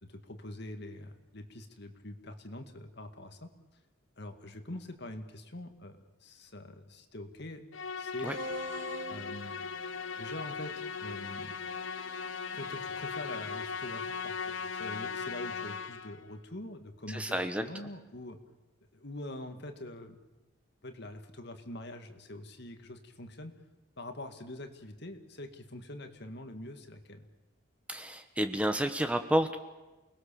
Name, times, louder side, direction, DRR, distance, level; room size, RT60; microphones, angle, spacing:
voice 1, 0.0-3.5 4.2-7.6 8.0-8.4 9.1-9.6 10.2-11.5 12.5-18.4 18.9-20.2 20.8-23.5 24.0-27.3, left 1 dB, 55° left, 7 dB, 2.2 m, -44 dB
Musical instrument, 7.7-16.3, left 5 dB, 75° left, 1.0 m, -38 dB
sound 1, 8.3-13.6, equal, 70° right, 1.8 m, -46 dB
voice 2, 17.1-17.6 27.9-29.6, right 1 dB, 5° right, 7 dB, 1.1 m, -30 dB
29.0 x 20.5 x 7.0 m, 1.1 s
head